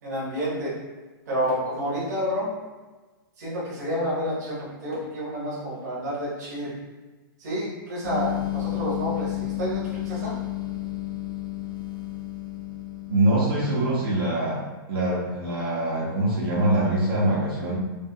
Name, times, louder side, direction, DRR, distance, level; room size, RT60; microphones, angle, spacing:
voice 1, 0.0-0.7 1.3-2.5 3.4-6.7 7.4-10.3, equal, 45° right, -9 dB, 1.5 m, -29 dB
sound 1, 8.0-14.5, left 15 dB, 80° left, 0.6 m, -32 dB
voice 2, 13.1-14.6 14.9-17.7, right 1 dB, 80° right, -7 dB, 1.4 m, -23 dB
4.9 x 2.3 x 2.4 m, 1.2 s
hypercardioid pair, 175°, 12 cm